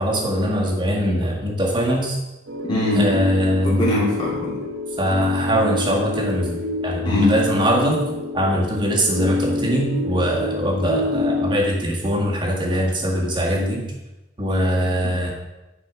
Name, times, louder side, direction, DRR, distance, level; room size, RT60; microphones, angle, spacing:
voice 1, 0.0-2.2 2.9-3.8 5.0-6.6 6.8-8.0 8.3-13.8 14.4-15.3, equal, 25° right, -2 dB, 1.7 m, -22 dB
sound 1, 2.5-11.6, left 2 dB, 85° right, 1.6 m, -26 dB
voice 2, 2.6-3.1 3.6-4.5 7.0-7.4, left 1 dB, 25° left, -7 dB, 2.4 m, -21 dB
9.9 x 4.9 x 6.1 m, 1.0 s
head